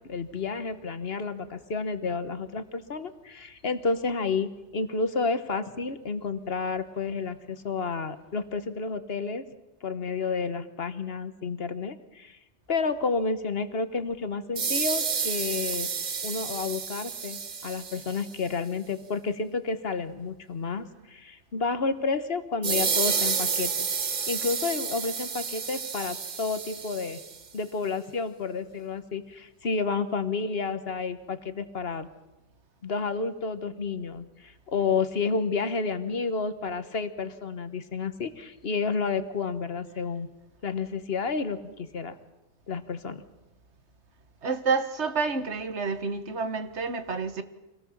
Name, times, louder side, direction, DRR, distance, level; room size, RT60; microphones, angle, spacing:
voice 1, 0.1-9.4 9.8-12.4 12.7-15.9 16.2-23.9 24.3-27.2 27.5-32.1 32.8-40.3 40.6-42.1 42.7-43.2, left 4 dB, 60° left, 1.4 m, -30 dB
sound 1, 14.6-18.4 22.6-27.4, right 6 dB, 40° right, 1.0 m, -30 dB
voice 2, 44.4-47.4, right 4 dB, 75° right, 1.6 m, -29 dB
25.5 x 18.0 x 7.3 m
omnidirectional pair, 1.2 m